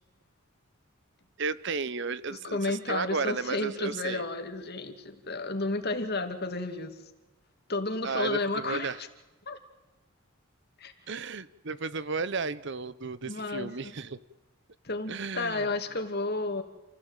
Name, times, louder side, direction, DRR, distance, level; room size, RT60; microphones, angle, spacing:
voice 1, 1.4-4.2 8.0-9.0 11.1-14.2 15.1-15.7, right 4 dB, 60° right, 16 dB, 0.9 m, -33 dB
voice 2, 2.3-7.0 7.7-9.1 9.5-9.6 10.8-10.9 13.2-13.9 14.8-16.6, left 3 dB, 50° left, 5 dB, 2.6 m, -32 dB
28.0 x 16.5 x 9.1 m, 1.1 s
head